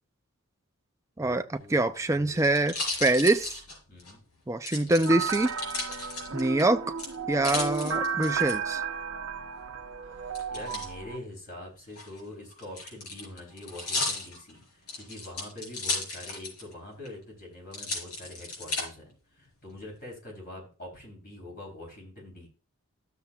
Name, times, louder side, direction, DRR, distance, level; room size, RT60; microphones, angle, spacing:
voice 1, 1.2-2.5 3.9-4.2 4.8-5.1 10.1-10.2 10.5-14.6 15.0-22.5, left 1 dB, 40° left, 3.7 m, -44 dB
sound 1, 1.6-4.1 4.7-6.6 7.0-8.5 10.3-10.9 11.8-16.7 17.0-17.1 17.7-18.8 19.5-20.0, left 3 dB, 90° left, 4.3 m, -35 dB
voice 2, 1.7-2.8 3.0-3.6 4.5-5.5 6.3-6.9 7.3-8.8, right 2 dB, 15° right, 0.4 m, -24 dB
sound 2, 5.1-11.2, right 6 dB, 65° right, 0.8 m, -33 dB
13.5 x 6.9 x 2.4 m
head